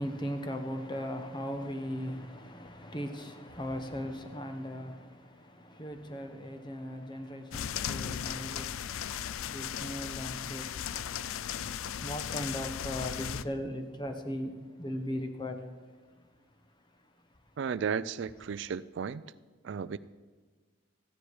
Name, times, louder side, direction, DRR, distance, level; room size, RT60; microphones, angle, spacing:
voice 1, 0.0-10.9 11.8-15.8 16.2-16.3, equal, 20° left, 1.0 m, -38 dB
sound 1, 7.5-13.4, left 9 dB, 85° left, 0.4 m, -36 dB
voice 2, 17.6-19.2 19.6-20.0, right 6 dB, 60° right, 0.3 m, -34 dB
14.5 x 10.0 x 4.8 m
head